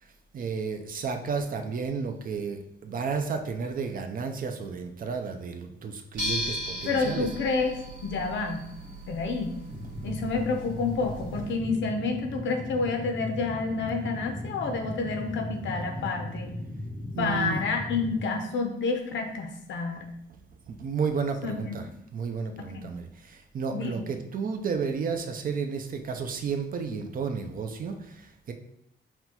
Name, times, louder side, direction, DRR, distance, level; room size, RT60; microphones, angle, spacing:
voice 1, 0.3-7.3 17.1-17.6 20.7-21.9 22.1-28.5, right 5 dB, 45° right, 6 dB, 0.4 m, -32 dB
sound 1, 6.1-11.5, equal, 75° right, 1.5 m, -37 dB
voice 2, 6.8-7.7 8.0-8.7 9.1-9.5 10.0-16.6 17.2-20.1 21.4-21.8 22.6-22.9 23.7-24.1, left 4 dB, 80° left, 4 dB, 0.7 m, -29 dB
sound 2, 9.7-18.3, left 1 dB, 10° left, 0.5 m, -37 dB
5.8 x 2.2 x 2.8 m, 0.79 s
cardioid pair, 120°, 19 cm